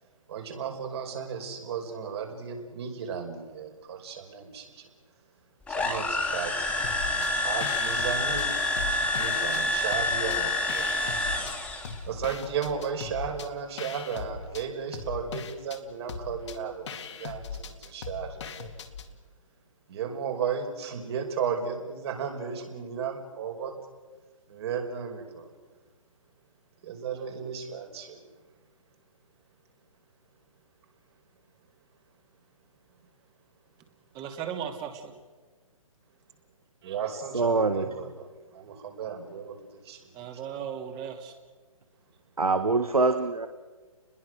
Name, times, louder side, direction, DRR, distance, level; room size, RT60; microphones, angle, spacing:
voice 1, 0.3-4.9 5.7-6.8 7.4-8.5 9.2-10.9 12.0-18.9 19.9-23.8 24.5-25.5 26.8-28.2 36.8-40.4, right 7 dB, 45° right, 3 dB, 5.4 m, -35 dB
sound 1, 5.7-12.0, left 2 dB, 5° left, 2.6 m, -28 dB
sound 2, 6.8-7.3 7.6-9.6 9.9-11.5 11.8-19.1, left 5 dB, 55° left, 2.3 m, -39 dB
voice 2, 34.1-35.2 40.1-41.3, right 8 dB, 25° right, 5 dB, 2.9 m, -36 dB
voice 3, 37.3-37.9 42.4-43.5, right 3 dB, 90° right, 9 dB, 1.6 m, -24 dB
29.5 x 21.5 x 6.4 m, 1.3 s
figure-of-eight pair, 140°, 18 cm